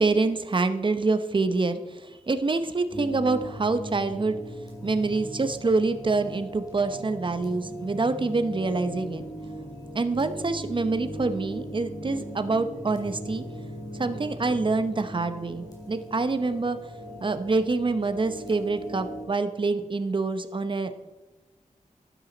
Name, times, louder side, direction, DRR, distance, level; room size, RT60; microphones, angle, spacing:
voice 1, 0.0-4.4 4.8-9.2 9.9-13.4 13.9-16.8 17.2-21.0, right 3 dB, 40° right, 10 dB, 0.8 m, -26 dB
sound 1, 2.9-19.3, equal, 30° left, 3.7 m, -39 dB
11.5 x 10.0 x 4.0 m, 1.2 s
wide cardioid pair, 115°, 13 cm